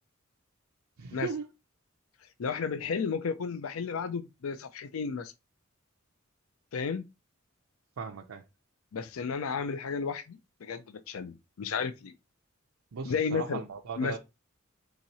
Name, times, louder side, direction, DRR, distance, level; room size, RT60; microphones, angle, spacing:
voice 1, 1.0-1.5 8.0-8.5 12.9-14.2, right 5 dB, 80° right, 0.5 m, -37 dB
voice 2, 2.4-5.3 6.7-7.0 8.9-12.1 13.0-13.6 14.0-14.2, left 5 dB, 80° left, 0.4 m, -33 dB
3.7 x 2.9 x 4.1 m
head